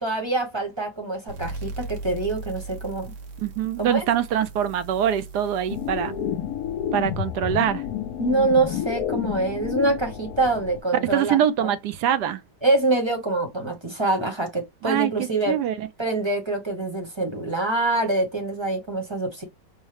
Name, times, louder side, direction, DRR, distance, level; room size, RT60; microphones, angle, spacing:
voice 1, 0.0-3.1 3.8-4.0 8.2-11.7 12.6-15.6 16.0-19.4, right 2 dB, 20° right, 0.8 m, -25 dB
sound 1, 1.3-8.5, right 3 dB, 55° right, 1.1 m, -39 dB
voice 2, 3.4-6.2 6.9-7.8 11.0-12.4 14.8-15.9, right 9 dB, 75° right, 1.2 m, -24 dB
sound 2, 5.7-10.8, left 10 dB, 70° left, 1.0 m, -30 dB
5.5 x 2.0 x 3.2 m
omnidirectional pair, 1.9 m